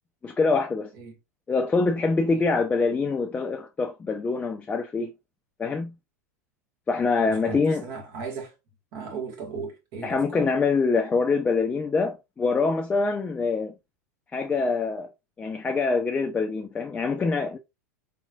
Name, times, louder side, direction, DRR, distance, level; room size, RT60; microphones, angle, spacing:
voice 1, 0.2-0.9 1.5-5.1 5.6-5.9 6.9-7.8 10.0-13.7 14.3-15.1 15.4-17.6, left 4 dB, 15° left, 0.4 m, -25 dB
voice 2, 7.3-8.5 8.9-10.5, right 5 dB, 50° right, 1.2 m, -36 dB
3.6 x 3.0 x 2.4 m
hypercardioid pair, 90°, 8 cm